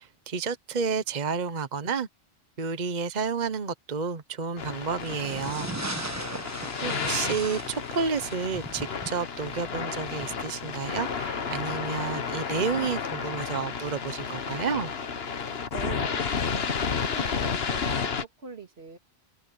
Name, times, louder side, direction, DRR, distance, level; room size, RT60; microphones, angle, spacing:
voice 1, 0.0-2.1 2.6-5.7 6.8-14.9, right 5 dB, 45° right, 1.0 m, -30 dB
sound 1, 4.6-18.2, left 6 dB, 70° left, 1.4 m, -32 dB
sound 2, 5.0-11.0, right 2 dB, 15° right, 1.3 m, -39 dB
voice 2, 5.9-7.3 15.7-19.0, right 4 dB, 75° right, 2.5 m, -43 dB
omnidirectional pair, 1.1 m